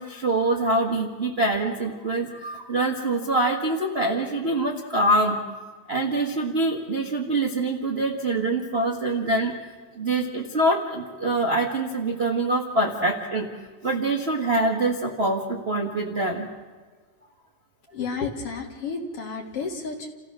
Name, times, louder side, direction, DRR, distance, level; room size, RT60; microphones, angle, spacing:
voice 1, 0.0-5.4 5.9-9.5 10.0-13.5 13.8-16.5, right 2 dB, 35° right, 0 dB, 1.0 m, -24 dB
voice 2, 17.9-20.1, left 5 dB, 50° left, 2 dB, 2.9 m, -31 dB
29.5 x 15.5 x 6.2 m, 1.5 s
omnidirectional pair, 3.5 m